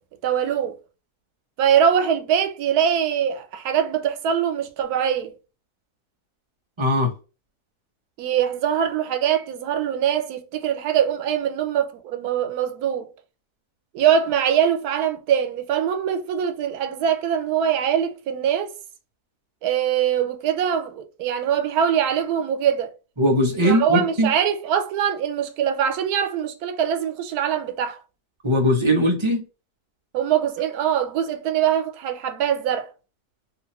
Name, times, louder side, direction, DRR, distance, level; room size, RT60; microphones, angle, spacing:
voice 1, 0.2-0.7 1.6-5.3 8.2-13.1 13.9-18.7 19.6-22.9 23.6-28.0 30.1-32.9, right 9 dB, 90° right, 1.2 m, -23 dB
voice 2, 6.8-7.1 23.2-24.3 28.4-29.4, equal, 35° right, 0.5 m, -20 dB
2.8 x 2.5 x 2.8 m
omnidirectional pair, 1.6 m